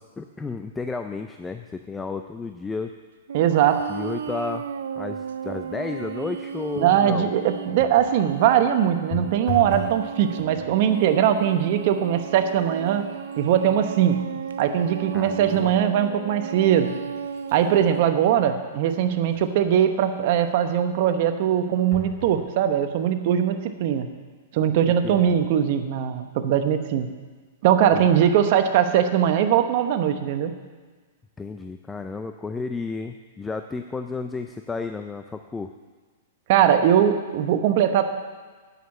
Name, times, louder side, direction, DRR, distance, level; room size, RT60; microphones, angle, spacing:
voice 1, 0.0-2.9 3.9-4.6 5.0-7.3 15.1-15.9 25.0-25.5 27.9-28.1 31.4-35.7, left 4 dB, 10° left, 7 dB, 0.4 m, -32 dB
voice 2, 3.3-3.8 6.8-13.1 13.4-14.2 14.6-16.9 17.5-24.1 24.5-27.1 27.6-30.5 36.5-38.0, right 9 dB, 55° right, 8 dB, 1.0 m, -21 dB
sound 1, 3.3-18.0, right 7 dB, 80° right, 0.4 m, -34 dB
sound 2, 7.7-8.2 9.1-10.0 10.3-10.8 11.6-11.7 12.1-15.7 16.2-16.3 17.0-19.7 21.9-22.4 23.1-23.2 23.4-23.5, left 3 dB, 50° left, 3.2 m, -39 dB
9.1 x 6.7 x 7.2 m, 1.4 s
hypercardioid pair, 130°, 0 cm